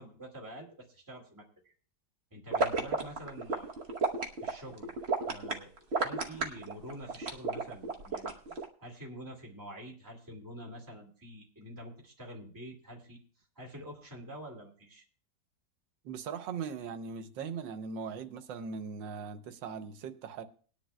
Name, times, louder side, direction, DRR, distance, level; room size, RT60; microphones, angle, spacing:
voice 1, 0.0-1.7 2.3-3.7 4.4-4.9 5.3-8.4 8.8-13.2 13.6-15.0, equal, 10° right, 2.1 m, -47 dB
sound 1, 2.5-8.6, right 3 dB, 45° right, 1.1 m, -32 dB
voice 2, 16.0-20.4, right 6 dB, 90° right, 1.5 m, -39 dB
20.5 x 10.0 x 2.2 m
omnidirectional pair, 2.0 m